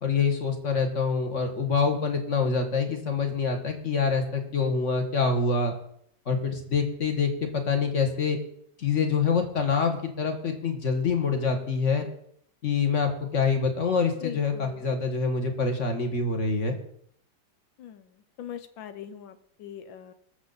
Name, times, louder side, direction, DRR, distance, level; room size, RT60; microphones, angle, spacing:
voice 1, 0.0-5.7 6.3-8.4 8.8-12.1 12.6-16.8, left 5 dB, 40° left, 5 dB, 1.7 m, -26 dB
voice 2, 14.2-14.8 17.8-18.1 18.4-20.1, left 9 dB, 75° left, 10 dB, 1.6 m, -40 dB
19.5 x 7.1 x 4.0 m, 0.68 s
omnidirectional pair, 2.2 m